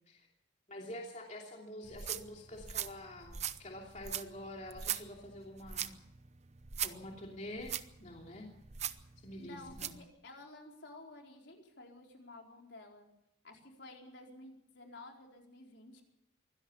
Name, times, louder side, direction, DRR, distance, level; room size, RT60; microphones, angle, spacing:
voice 1, 0.7-6.0 6.8-8.5 9.2-9.9, left 1 dB, 35° left, 0 dB, 2.9 m, -47 dB
sound 1, 1.8-10.0, right 10 dB, 35° right, 0.8 m, -42 dB
voice 2, 9.4-13.1 13.4-16.0, left 2 dB, 65° left, 1 dB, 4.5 m, -53 dB
24.0 x 17.0 x 7.1 m, 0.77 s
head